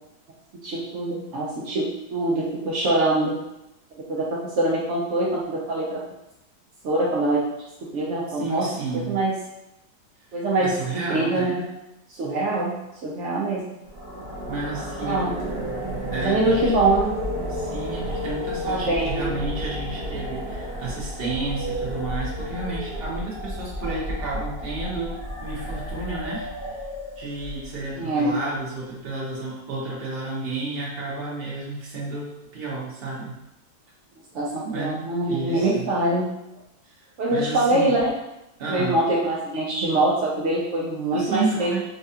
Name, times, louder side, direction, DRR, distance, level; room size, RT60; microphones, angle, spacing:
voice 1, 0.6-3.3 4.1-6.0 6.8-7.4 7.9-8.7 8.9-9.3 10.3-11.6 12.1-12.8 13.0-13.6 15.0-15.3 16.1-17.1 18.7-19.3 27.9-28.4 34.3-36.3 37.2-38.1 38.7-41.8, right 2 dB, 70° right, -5 dB, 0.7 m, -24 dB
voice 2, 8.4-9.2 10.6-11.6 14.4-15.3 16.1-16.7 17.5-26.8 27.2-33.4 34.6-35.0 35.3-35.9 36.8-38.0 38.6-39.0 41.1-41.8, right 3 dB, 40° right, -6 dB, 0.9 m, -31 dB
sound 1, 13.8-27.9, equal, 25° left, 0.5 m, -32 dB
4.2 x 2.3 x 2.7 m, 0.89 s
omnidirectional pair, 1.9 m